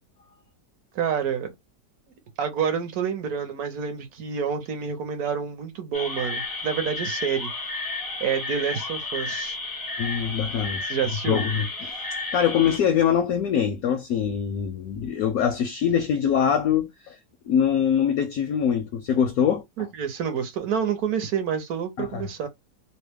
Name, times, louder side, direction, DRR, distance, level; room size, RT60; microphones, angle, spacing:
voice 1, 0.9-1.5 2.4-7.5 8.2-9.5 10.8-11.4 19.8-22.5, right 7 dB, 65° right, 1.1 m, -28 dB
sound 1, 5.9-12.8, left 3 dB, 25° left, 0.5 m, -32 dB
voice 2, 10.0-10.8 11.3-11.9 12.3-17.1 17.5-19.6 22.0-22.2, left 8 dB, 70° left, 0.8 m, -23 dB
3.0 x 2.1 x 3.2 m
omnidirectional pair, 1.9 m